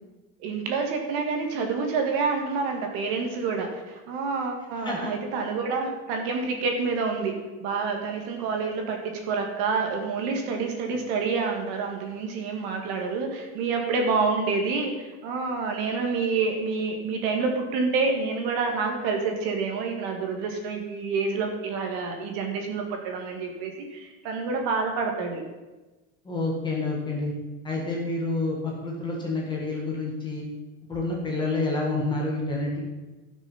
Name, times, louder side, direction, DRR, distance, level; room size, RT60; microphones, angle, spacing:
voice 1, 0.4-7.3 7.6-25.4, right 4 dB, 40° right, 3 dB, 1.7 m, -28 dB
voice 2, 26.3-27.3 27.6-30.4 30.9-32.8, left 2 dB, 10° left, -3 dB, 1.6 m, -28 dB
14.0 x 6.2 x 5.6 m, 1.2 s
supercardioid pair, 180°, 42 cm